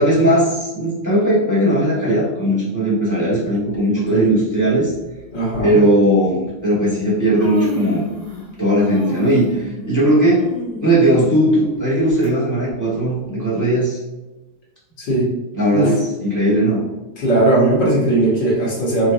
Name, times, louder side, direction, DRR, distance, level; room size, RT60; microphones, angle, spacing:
voice 1, 0.0-4.9 5.6-8.0 8.6-10.5 10.8-14.0 15.5-16.9, right 1 dB, 10° left, -9 dB, 1.0 m, -17 dB
Human voice, 3.5-3.8 4.8-4.9 5.5-5.7 6.7-6.8 7.1-8.5 8.8-12.3 12.7-12.8 13.6-13.7, left 2 dB, 30° right, 0.7 m, -30 dB
voice 2, 5.3-5.8 15.0-15.3 15.7-15.9 17.2-19.1, right 1 dB, 70° left, -6 dB, 1.7 m, -18 dB
5.0 x 2.1 x 2.6 m, 1.1 s
omnidirectional pair, 2.1 m